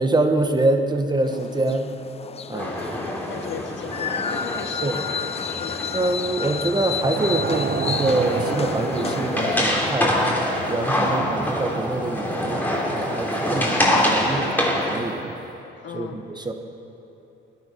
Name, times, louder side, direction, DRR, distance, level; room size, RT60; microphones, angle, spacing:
voice 1, 0.0-1.9 2.5-2.7 4.8-5.0 5.9-10.3 10.7-14.6 14.9-15.2 15.9-16.5, right 2 dB, 20° right, 5 dB, 1.3 m, -25 dB
sound 1, 1.2-9.7, left 6 dB, 30° left, 0.5 m, -32 dB
voice 2, 2.5-6.1 10.9-11.3 14.4-14.7 15.8-16.2, left 7 dB, 65° left, 6 dB, 1.2 m, -36 dB
sound 2, 2.6-15.0, left 1 dB, 10° left, 3.0 m, -26 dB
sound 3, 6.7-15.4, right 7 dB, 50° right, 0.7 m, -34 dB
19.5 x 10.5 x 5.5 m, 3.0 s
cardioid pair, 90°, 20 cm